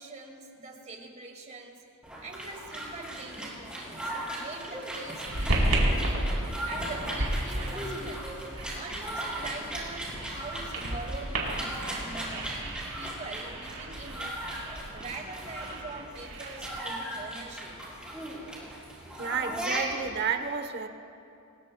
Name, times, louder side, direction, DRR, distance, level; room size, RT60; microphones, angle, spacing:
voice 1, 0.0-1.8 2.2-6.1 6.4-8.3 8.7-12.6 13.0-14.6 14.9-17.8, right 3 dB, 35° right, 2 dB, 2.0 m, -43 dB
sound 1, 2.0-20.2, right 1 dB, 5° right, 4.7 m, -38 dB
sound 2, 5.3-16.8, right 1 dB, 70° right, 3.9 m, -33 dB
voice 2, 19.2-20.9, right 6 dB, 50° right, 8 dB, 1.0 m, -31 dB
27.5 x 20.0 x 2.3 m, 2.7 s
head